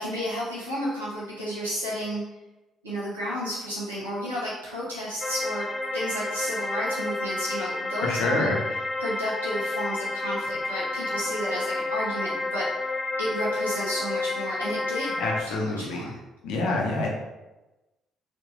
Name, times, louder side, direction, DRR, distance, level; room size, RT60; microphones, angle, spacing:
voice 1, 0.0-2.2 2.8-5.7 5.9-8.5 9.0-12.7 13.2-15.2 15.5-16.2, equal, 85° right, -7 dB, 0.9 m, -32 dB
sound 1, 5.2-15.4, left 2 dB, 15° left, 0.3 m, -30 dB
voice 2, 8.0-8.6 15.2-16.1 16.4-17.1, left 2 dB, 65° left, -1 dB, 0.8 m, -27 dB
3.6 x 2.7 x 3.8 m, 1.0 s
figure-of-eight pair, 45°, 0 cm